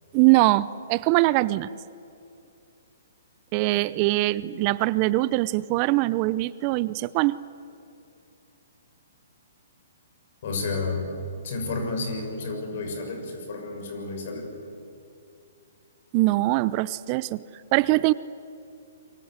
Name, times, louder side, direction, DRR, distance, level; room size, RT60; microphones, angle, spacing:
voice 1, 0.1-1.7 3.5-7.4 16.1-17.4 17.7-18.1, right 19 dB, 35° right, 19 dB, 0.6 m, -22 dB
voice 2, 10.4-11.1 11.4-14.5, left 3 dB, 55° left, 4 dB, 6.7 m, -31 dB
27.0 x 23.5 x 8.1 m, 2.6 s
hypercardioid pair, 130°, 0 cm